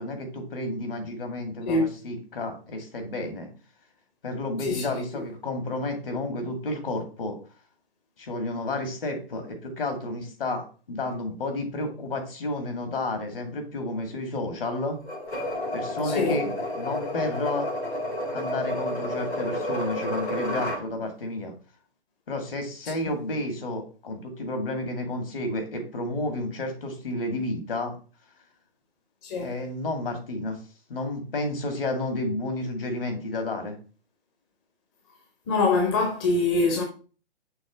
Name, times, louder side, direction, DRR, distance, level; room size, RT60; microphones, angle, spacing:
voice 1, 0.0-3.5 4.2-7.4 8.2-15.0 15.7-16.5 16.8-17.7 18.3-21.5 22.3-28.0 29.4-30.6 30.9-33.8, left 2 dB, 60° left, 2.1 m, -31 dB
sound 1, 15.1-20.8, left 1 dB, 85° left, 2.9 m, -30 dB
voice 2, 16.0-16.3 29.2-29.5 35.5-36.8, left 3 dB, 20° left, 0.7 m, -23 dB
6.3 x 3.2 x 5.1 m
figure-of-eight pair, 135°, 32 cm